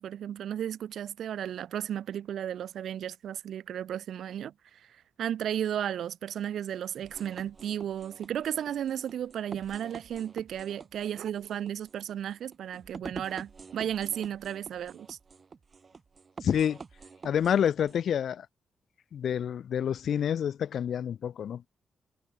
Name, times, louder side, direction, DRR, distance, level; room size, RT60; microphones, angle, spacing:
voice 1, 0.0-15.2, right 10 dB, 75° right, 0.6 m, -34 dB
sound 1, 7.0-18.0, right 5 dB, 30° right, 1.7 m, -47 dB
voice 2, 16.4-16.8 17.2-18.5 19.1-21.7, left 9 dB, 65° left, 0.4 m, -28 dB
wide cardioid pair, 160°, 0 cm